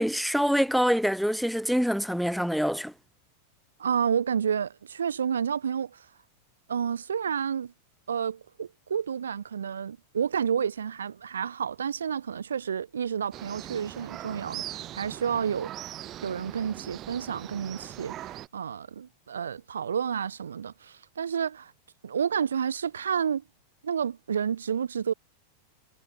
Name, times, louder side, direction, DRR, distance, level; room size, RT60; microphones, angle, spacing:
voice 1, 0.0-2.9, equal, ahead, 0.3 m, -25 dB
voice 2, 3.8-6.0 6.7-7.7 8.1-15.7 16.2-21.7 22.0-23.4 23.8-25.1, right 7 dB, 70° right, 1.2 m, -30 dB
sound 1, 13.3-18.5, right 13 dB, 30° right, 4.2 m, -41 dB
figure-of-eight pair, 90°, 0 cm